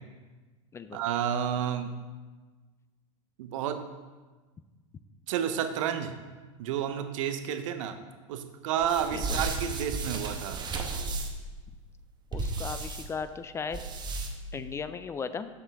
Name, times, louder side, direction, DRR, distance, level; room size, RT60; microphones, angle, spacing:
voice 1, 0.9-1.9 3.4-3.9 5.3-6.2 6.6-8.0 8.3-10.6, right 9 dB, 70° right, 8 dB, 0.7 m, -30 dB
sound 1, 8.8-11.5 12.3-13.0 13.7-14.5, right 3 dB, 25° right, 0.9 m, -34 dB
voice 2, 12.3-13.8 14.5-15.5, left 5 dB, 15° left, 12 dB, 0.3 m, -36 dB
6.9 x 6.6 x 3.5 m, 1.3 s
hypercardioid pair, 110°, 17 cm